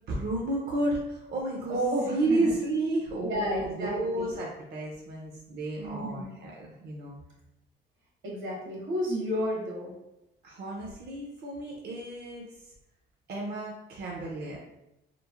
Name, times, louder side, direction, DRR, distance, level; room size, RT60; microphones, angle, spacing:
voice 1, 0.1-1.8 2.1-7.2 10.4-12.7 13.3-14.6, right 2 dB, 55° right, -2 dB, 0.5 m, -32 dB
voice 2, 1.7-2.5 3.2-4.3 5.8-6.3 8.2-9.9, equal, 75° right, -3 dB, 1.1 m, -31 dB
3.0 x 2.1 x 2.4 m, 0.90 s
cardioid pair, 90°, 20 cm